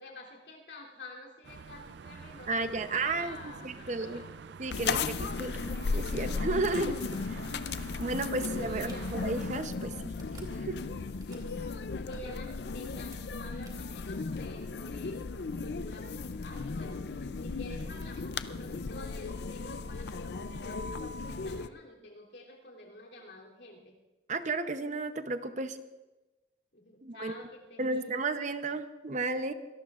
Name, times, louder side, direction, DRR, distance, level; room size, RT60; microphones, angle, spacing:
voice 1, 0.0-4.3 7.9-8.0 8.4-9.1 11.2-23.9 26.7-28.1, left 1 dB, 80° left, -1 dB, 3.1 m, -49 dB
sound 1, 1.4-9.6, right 5 dB, 70° right, 0.4 m, -47 dB
voice 2, 2.5-4.2 4.6-5.6 5.9-7.4 8.0-10.1 10.4-10.8 24.3-25.8 27.0-27.3 27.8-29.5, right 3 dB, 40° right, 9 dB, 0.8 m, -33 dB
sound 2, 4.7-21.7, left 4 dB, 65° left, 0.5 m, -36 dB
sound 3, 8.9-14.8, right 1 dB, 20° right, 2.7 m, -57 dB
25.0 x 18.0 x 2.5 m, 1.1 s
head